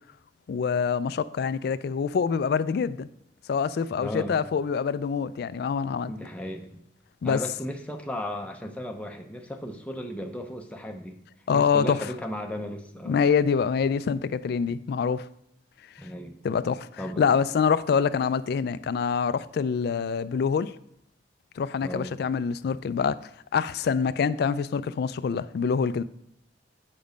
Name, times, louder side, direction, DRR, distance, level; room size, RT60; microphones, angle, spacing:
voice 1, 0.5-3.1 3.5-6.1 7.2-7.4 11.5-12.1 13.1-15.3 16.4-16.9 17.2-20.7 21.6-23.2 23.5-26.0, left 6 dB, 60° left, 0.3 m, -25 dB
voice 2, 4.0-4.4 6.0-6.8 7.2-11.2 11.5-13.2 16.0-16.4 17.0-17.5 21.8-22.1, left 1 dB, 5° left, 0.6 m, -35 dB
7.2 x 5.3 x 5.0 m
head